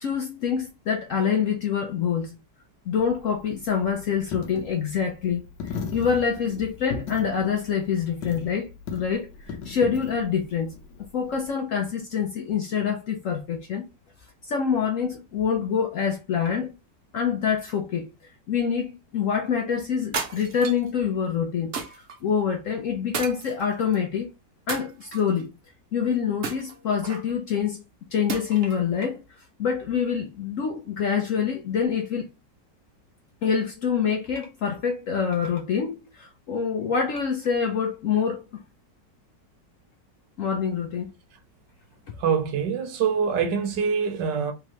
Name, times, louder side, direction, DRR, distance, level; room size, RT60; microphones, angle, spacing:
voice 1, 0.0-2.4 2.9-13.9 14.4-16.7 17.1-18.1 18.5-21.7 22.2-24.3 24.7-25.5 25.9-27.8 28.1-29.2 29.6-32.3 33.4-38.4 40.4-41.1, left 7 dB, 65° left, 0.8 m, -26 dB
Coin (dropping), 2.9-11.5, left 5 dB, 85° left, 1.5 m, -38 dB
sound 1, 20.1-20.9 21.7-22.2 23.1-24.0 24.7-25.4 26.4-27.3 28.3-28.8, right 5 dB, 55° right, 0.9 m, -33 dB
voice 2, 42.2-44.5, right 6 dB, 85° right, 1.5 m, -24 dB
3.6 x 3.1 x 3.0 m
omnidirectional pair, 1.9 m